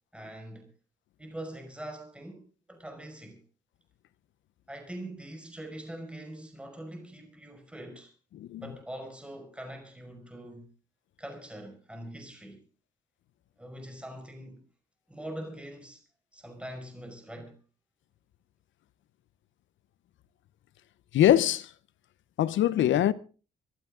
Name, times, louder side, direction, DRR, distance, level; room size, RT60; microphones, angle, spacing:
voice 1, 0.1-0.7 1.2-3.4 4.7-8.1 8.6-10.7 11.2-12.6 13.6-14.6 15.1-16.0 16.3-17.6, right 1 dB, 5° right, 5.5 m, -43 dB
voice 2, 21.1-21.7 22.4-23.1, left 12 dB, 75° left, 0.8 m, -22 dB
25.5 x 12.0 x 3.8 m
cardioid pair, 90°, 20 cm